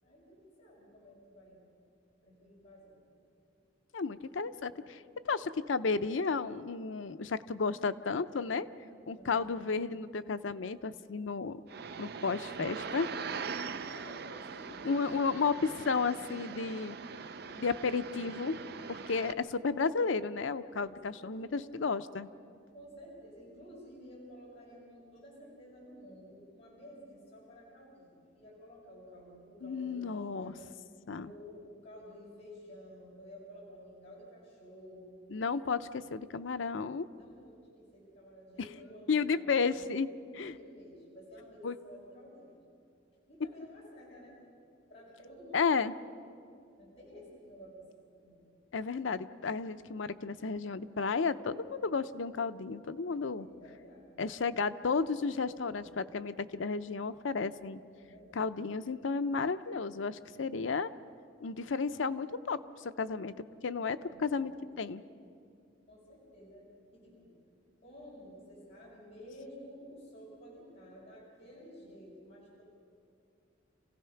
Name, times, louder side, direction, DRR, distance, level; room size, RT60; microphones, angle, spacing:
voice 1, 0.0-1.6 2.2-3.0 9.2-9.6 12.4-13.1 13.8-15.2 20.8-21.6 22.7-30.6 31.1-35.2 37.1-39.8 40.3-42.5 43.3-44.4 44.9-45.8 46.8-48.4 53.3-54.2 55.7-55.9 58.0-58.4 64.0-64.7 65.9-67.3 67.8-72.6, equal, 35° left, -6 dB, 6.3 m, -52 dB
voice 2, 3.9-5.0 5.3-8.7 9.1-11.6 12.0-13.1 14.8-17.0 17.5-18.6 18.9-22.3 29.6-30.5 31.1-31.3 35.3-37.1 39.1-40.1 40.3-40.5 41.6-41.7 45.5-45.9 48.7-53.5 54.2-57.8 58.3-60.9 61.4-63.3 63.6-64.5 64.8-65.0, left 4 dB, 90° left, 12 dB, 0.6 m, -33 dB
sound 1, 11.7-19.3, right 5 dB, 55° right, 0.5 m, -42 dB
28.0 x 16.5 x 5.8 m, 2.4 s
head